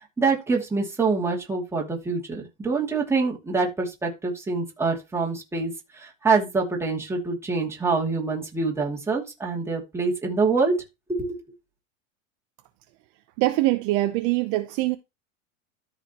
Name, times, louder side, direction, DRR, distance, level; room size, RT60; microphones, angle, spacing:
voice 1, 0.2-10.7 11.1-11.4, right 4 dB, 5° right, 2.5 m, -25 dB
voice 2, 13.4-15.0, right 17 dB, 45° right, 0.8 m, -23 dB
13.5 x 5.1 x 3.0 m
supercardioid pair, 155°, 37 cm